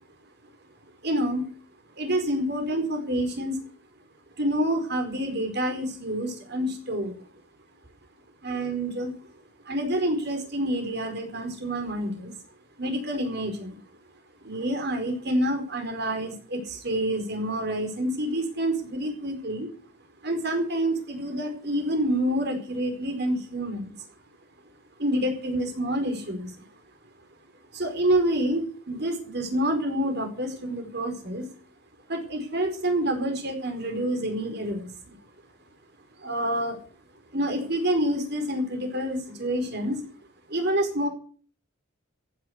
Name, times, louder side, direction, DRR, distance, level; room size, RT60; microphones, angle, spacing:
voice 1, 1.0-1.4 2.0-3.6 4.4-7.1 8.4-9.1 9.6-12.3 12.8-13.8 14.4-19.7 20.2-24.0 25.0-26.6 27.7-31.5 32.1-35.2 36.2-36.8 37.3-40.0 40.5-41.1, right 1 dB, 50° right, 5 dB, 4.7 m, -28 dB
15.0 x 10.0 x 8.1 m, 0.44 s
head